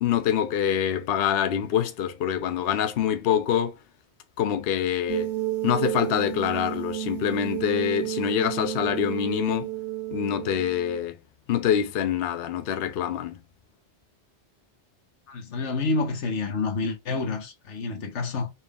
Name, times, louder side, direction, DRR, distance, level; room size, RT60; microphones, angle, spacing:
voice 1, 0.0-3.8 4.4-5.3 5.6-9.7 10.1-11.2 11.5-13.4, left 9 dB, 65° left, 0.8 m, -25 dB
sound 1, 5.1-11.0, right 14 dB, 80° right, 1.1 m, -31 dB
voice 2, 15.3-18.5, left 3 dB, 85° left, 1.2 m, -28 dB
4.2 x 2.4 x 3.4 m
omnidirectional pair, 1.2 m